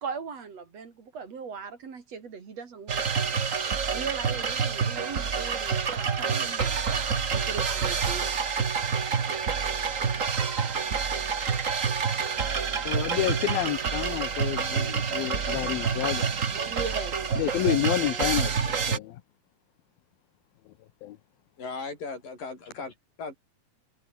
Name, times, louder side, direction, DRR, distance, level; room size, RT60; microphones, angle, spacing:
voice 1, 0.0-3.2 3.9-8.8 16.5-17.5 18.1-18.4, right 5 dB, 45° right, 4.0 m, -39 dB
sound 1, 2.9-19.0, right 6 dB, 70° right, 0.7 m, -28 dB
voice 2, 12.9-16.3 17.4-19.2 21.0-21.2, left 15 dB, 85° left, 2.9 m, -29 dB
voice 3, 21.6-23.3, left 4 dB, 65° left, 9.3 m, -37 dB
omnidirectional pair, 4.1 m